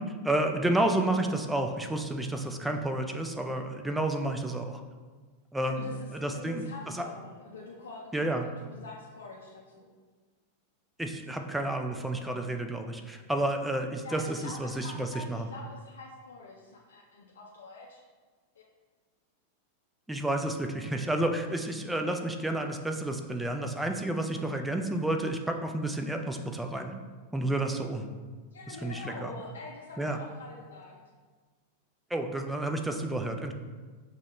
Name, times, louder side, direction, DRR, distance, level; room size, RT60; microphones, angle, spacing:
voice 1, 0.0-4.8 5.5-6.6 6.9-7.0 8.1-8.5 11.0-15.5 20.1-26.9 27.3-28.1 28.7-29.3 30.0-30.2 32.1-33.5, right 1 dB, 5° right, 4 dB, 0.4 m, -30 dB
voice 2, 5.6-9.9 14.0-18.0 28.5-30.9, left 3 dB, 65° left, -3 dB, 0.5 m, -45 dB
6.1 x 2.1 x 2.9 m, 1.4 s
figure-of-eight pair, 90°, 0 cm